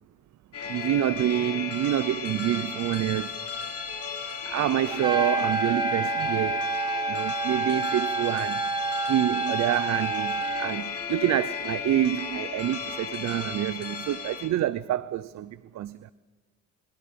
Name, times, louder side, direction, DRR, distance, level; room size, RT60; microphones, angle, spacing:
sound 1, 0.5-14.5, left 6 dB, 50° left, 3.6 m, -35 dB
voice 1, 0.6-3.4 4.2-6.7 7.1-8.8 9.1-16.1, right 12 dB, 65° right, 0.6 m, -27 dB
Trumpet, 4.9-10.7, right 4 dB, 15° right, 0.9 m, -29 dB
25.0 x 22.5 x 5.3 m
cardioid pair, 90°, 30 cm